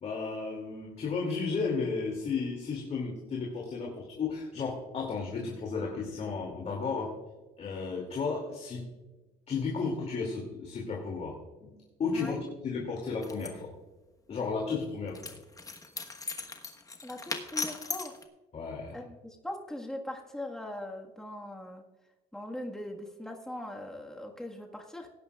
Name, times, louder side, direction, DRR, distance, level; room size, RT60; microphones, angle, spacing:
voice 1, 0.0-7.1 7.6-8.9 9.5-13.7 14.3-15.2 18.5-19.0, left 4 dB, 40° left, -1 dB, 2.5 m, -33 dB
sound 1, 13.2-13.5 15.1-18.2, left 4 dB, 20° left, 1.2 m, -38 dB
voice 2, 17.0-18.2 18.9-21.8 22.3-25.1, left 1 dB, 5° left, 0 dB, 1.5 m, -40 dB
18.5 x 10.0 x 2.4 m, 1.1 s
cardioid pair, 110°, 17 cm